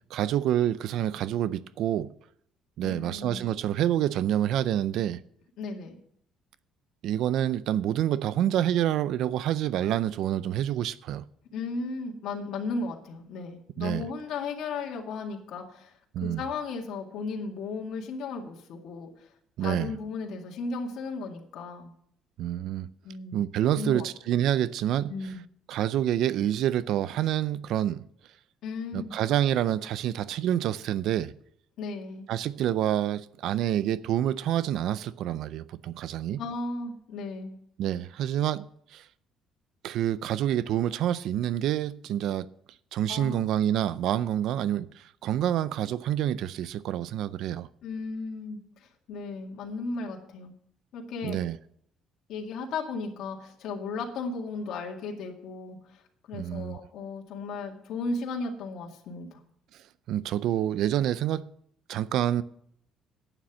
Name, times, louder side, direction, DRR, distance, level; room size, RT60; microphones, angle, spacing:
voice 1, 0.1-2.1 2.8-5.2 7.0-11.2 13.8-14.1 16.1-16.4 19.6-19.9 22.4-22.9 23.3-25.1 25.7-28.0 28.9-31.3 32.3-36.4 37.8-39.1 39.8-42.5 42.9-47.7 51.2-51.6 56.3-56.8 60.1-61.5 61.9-62.4, right 11 dB, 60° right, 0.4 m, -27 dB
voice 2, 2.8-3.4 5.6-6.0 11.5-19.1 19.6-21.9 23.0-23.4 23.8-24.1 25.1-25.4 28.6-29.1 31.8-32.3 36.4-37.6 43.1-43.5 47.8-50.5 50.9-51.4 52.3-56.0 56.3-59.4, left 3 dB, 55° left, 2.1 m, -35 dB
11.5 x 9.0 x 6.0 m
cardioid pair, 170°, 0 cm